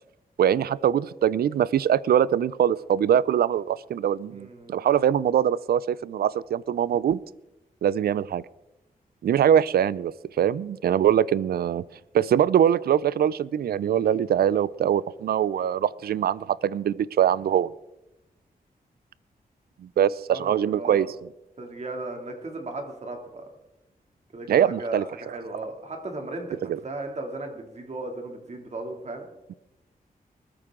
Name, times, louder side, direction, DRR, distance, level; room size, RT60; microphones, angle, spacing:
voice 1, 0.4-7.2 7.8-8.4 9.2-11.8 12.1-17.7 19.8-21.1 24.5-25.0 26.7-26.8, right 9 dB, 80° right, 20 dB, 0.4 m, -23 dB
voice 2, 4.3-4.9 20.3-21.1 21.6-23.5 24.3-29.3, right 2 dB, 45° right, 3 dB, 2.6 m, -36 dB
20.0 x 13.5 x 3.7 m, 0.94 s
wide cardioid pair, 140°, 16 cm